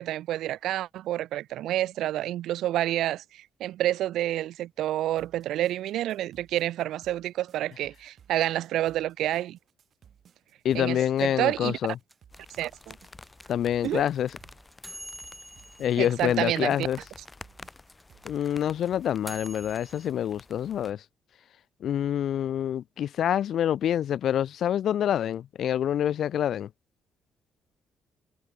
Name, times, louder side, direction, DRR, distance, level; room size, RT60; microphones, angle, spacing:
voice 1, 0.0-9.6 10.7-11.8 12.6-13.0 13.8-14.0 16.0-16.9, right 13 dB, 80° right, 0.6 m, -29 dB
sound 1, 5.2-19.9, right 8 dB, 60° right, 6.7 m, -59 dB
voice 2, 10.6-12.0 13.5-14.3 15.8-17.0 18.2-21.0 21.8-26.7, left 10 dB, 70° left, 1.1 m, -26 dB
sound 2, 12.1-17.2 17.5-17.6 17.8-20.1, equal, ahead, 2.6 m, -46 dB
sound 3, 12.3-20.9, left 3 dB, 20° left, 2.2 m, -51 dB
cardioid pair, 90°, 0 cm